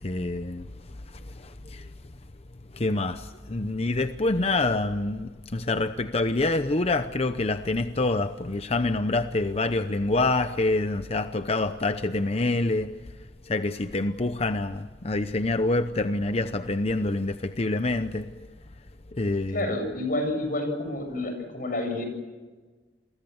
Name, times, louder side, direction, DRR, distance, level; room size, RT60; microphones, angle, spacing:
voice 1, 0.0-0.7 1.4-1.9 2.7-12.9 13.5-18.3 19.2-19.7, left 2 dB, 35° left, 0.8 m, -26 dB
voice 2, 19.5-22.0, left 1 dB, 55° left, 7.5 m, -29 dB
30.0 x 23.0 x 7.1 m
head